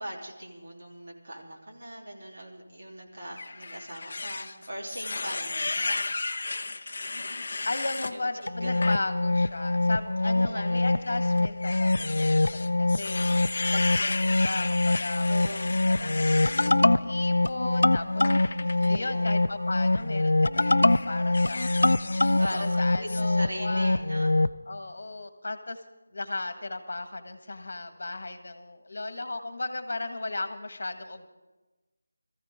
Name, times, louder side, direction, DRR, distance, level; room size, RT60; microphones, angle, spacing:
voice 1, 0.0-6.1 8.1-8.8 10.2-10.9 15.3-15.8 18.8-19.4 22.4-24.4, right 1 dB, 50° right, -2 dB, 3.3 m, -40 dB
sound 1, 3.4-8.1 8.6-9.0 9.4-9.6 10.6-16.7 18.2-18.9 19.8-20.1 20.5-22.8 23.1-23.2, left 3 dB, 35° left, 0.7 m, -34 dB
voice 2, 7.7-15.6 15.8-18.6 18.9-24.0 24.7-25.8 26.1-31.3, left 2 dB, 50° left, 8 dB, 1.5 m, -36 dB
sound 2, 8.5-24.6, left 2 dB, 85° left, 0.5 m, -24 dB
21.0 x 14.5 x 3.6 m, 1.1 s
figure-of-eight pair, 180°, 0 cm